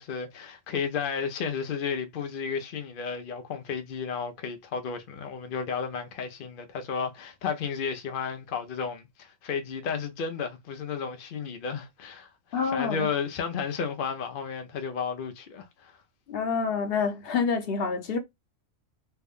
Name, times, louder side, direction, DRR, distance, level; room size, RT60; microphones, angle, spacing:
voice 1, 0.0-16.0, left 6 dB, 90° left, 0.4 m, -33 dB
voice 2, 12.5-13.1 16.3-18.2, left 5 dB, 50° left, 0.8 m, -27 dB
3.3 x 2.1 x 3.5 m
omnidirectional pair, 1.6 m